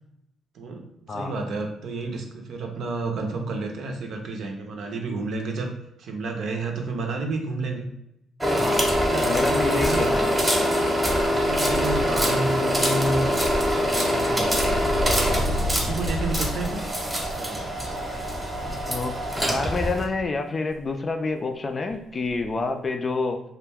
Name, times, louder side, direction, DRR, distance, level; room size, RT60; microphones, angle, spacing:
voice 1, 0.5-5.7 6.0-7.9 9.1-10.2 11.1-14.8 15.4-16.8 17.3-17.8, right 3 dB, 70° right, 3 dB, 0.5 m, -31 dB
sound 1, 8.4-20.0, equal, 5° right, 0.8 m, -24 dB
voice 2, 8.6-8.9 9.2-10.4 18.9-19.2 19.5-23.4, left 3 dB, 35° left, 6 dB, 0.3 m, -28 dB
sound 2, 14.0-20.3 20.7-20.8 21.9-22.0 22.2-22.5, equal, 80° left, 0.6 m, -32 dB
2.3 x 2.1 x 3.3 m, 0.81 s
cardioid pair, 90°, 0 cm